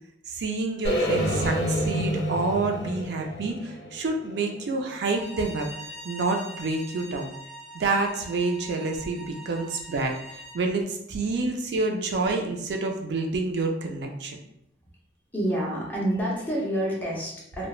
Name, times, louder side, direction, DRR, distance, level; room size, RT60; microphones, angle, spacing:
voice 1, 0.3-7.3 7.7-14.4, right 3 dB, 70° right, 3 dB, 0.4 m, -28 dB
sound 1, 0.8-4.9, equal, 75° left, 0.5 m, -28 dB
Bowed string instrument, 5.0-10.6, right 1 dB, 20° right, 1.2 m, -43 dB
voice 2, 15.3-17.7, right 1 dB, 10° left, -5 dB, 0.6 m, -28 dB
3.0 x 2.1 x 2.3 m, 0.77 s
head